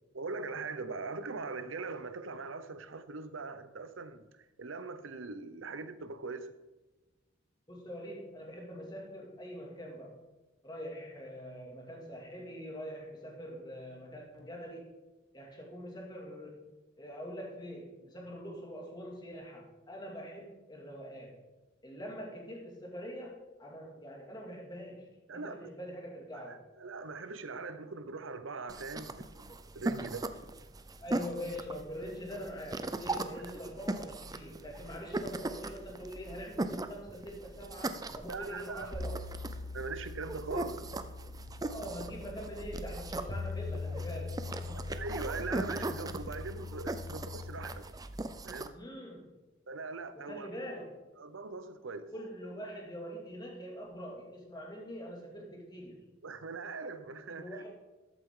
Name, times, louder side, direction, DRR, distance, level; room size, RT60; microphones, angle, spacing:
voice 1, 0.1-4.3 4.6-6.5 25.3-25.7 26.3-30.3 33.4-33.5 38.3-38.9 39.7-41.0 44.7-47.8 48.4-48.7 49.7-50.5 51.2-52.1 56.2-57.6, right 4 dB, 75° right, 11 dB, 0.8 m, -41 dB
voice 2, 7.7-10.2 10.6-14.9 15.3-16.7 17.0-21.4 21.8-26.6 31.0-39.2 41.6-44.9 48.7-49.3 50.1-51.0 52.1-56.1 57.2-57.7, equal, 20° left, -1 dB, 2.4 m, -44 dB
sound 1, 28.7-48.7, right 2 dB, 20° right, 0.5 m, -39 dB
sound 2, 38.9-47.7, left 3 dB, 60° left, 1.7 m, -42 dB
14.0 x 7.9 x 3.8 m, 1.1 s
head